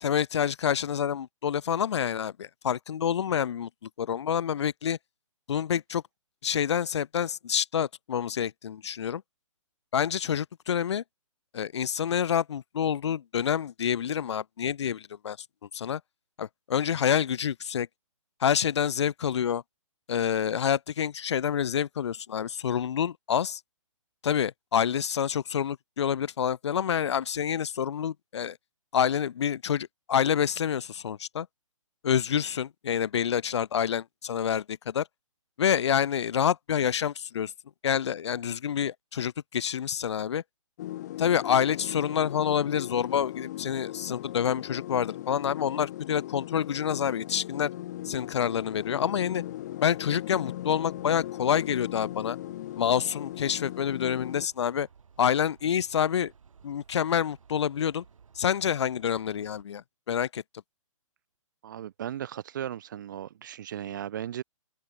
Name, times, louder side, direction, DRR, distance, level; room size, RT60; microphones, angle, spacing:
voice 1, 0.0-5.0 5.5-6.0 6.4-9.2 9.9-11.0 11.5-15.4 15.7-16.0 16.4-17.9 18.4-19.6 20.1-23.6 24.2-28.6 28.9-31.5 32.0-35.1 35.6-37.5 37.8-40.4 41.2-47.7 48.0-49.4 49.8-52.4 52.8-54.9 55.2-56.3 56.6-58.0 58.4-60.4, left 8 dB, 55° left, 1.0 m, -27 dB
sound 1, 40.8-54.5, left 14 dB, 30° left, 1.6 m, -38 dB
sound 2, 47.9-59.6, right 6 dB, 75° right, 7.5 m, -58 dB
voice 2, 61.6-64.4, right 10 dB, 35° right, 0.6 m, -36 dB
open air
hypercardioid pair, 165°, 17 cm